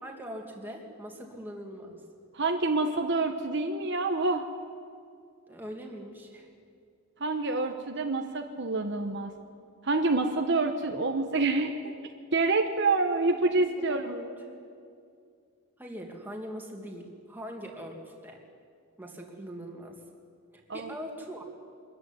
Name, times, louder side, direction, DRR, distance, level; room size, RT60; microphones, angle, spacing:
voice 1, 0.0-2.0 5.5-6.5 13.2-13.6 13.9-14.6 15.8-18.4 19.0-20.0 20.5-21.4, equal, 10° right, 0 dB, 2.5 m, -42 dB
voice 2, 2.3-4.5 7.2-9.3 9.8-11.8 12.3-14.1 20.7-20.9, right 3 dB, 55° right, 4 dB, 1.2 m, -27 dB
24.0 x 14.0 x 9.9 m, 2.3 s
head